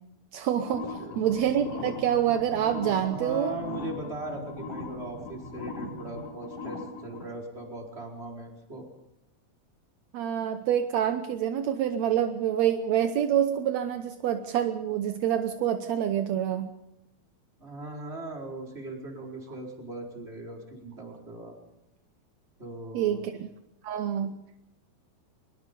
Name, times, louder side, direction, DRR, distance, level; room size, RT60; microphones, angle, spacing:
voice 1, 0.3-3.5 10.1-16.7 22.9-23.5 23.8-24.4, right 10 dB, 75° right, 8 dB, 1.6 m, -27 dB
sound 1, 0.6-7.2, left 4 dB, 60° left, 4.4 m, -40 dB
voice 2, 1.0-1.3 2.9-8.8 17.6-21.6 22.6-23.3 24.2-24.3, right 2 dB, 15° right, 0 dB, 4.7 m, -39 dB
sound 2, 1.2-6.3, right 2 dB, 15° left, 6.7 m, -45 dB
24.0 x 21.5 x 5.4 m, 0.86 s
omnidirectional pair, 4.4 m